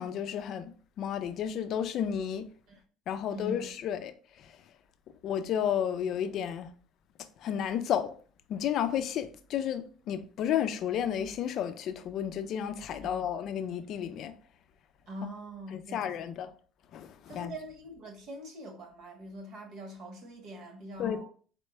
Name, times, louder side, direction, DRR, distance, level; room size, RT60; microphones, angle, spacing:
voice 1, 0.0-2.5 3.1-4.6 5.2-6.7 7.4-8.1 8.5-14.3 15.7-16.5 16.9-17.5 21.0-21.2, left 9 dB, 50° left, 0.4 m, -32 dB
voice 2, 3.3-3.6 13.0-13.1 15.1-16.3 17.3-21.2, equal, 50° right, 1.2 m, -43 dB
4.4 x 3.2 x 3.3 m
cardioid pair, 140°, 0 cm